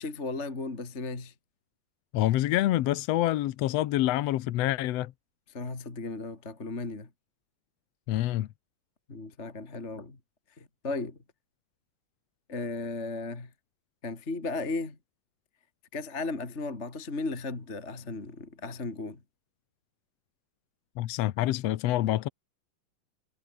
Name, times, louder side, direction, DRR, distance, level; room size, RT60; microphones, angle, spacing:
voice 1, 0.0-1.3 5.5-7.1 9.1-10.2 10.6-11.2 12.5-13.5 14.0-15.0 15.9-19.2, left 3 dB, 20° left, 3.1 m, -35 dB
voice 2, 2.1-5.1 8.1-8.5 21.0-22.3, left 14 dB, 70° left, 1.6 m, -26 dB
omnidirectional pair, 3.8 m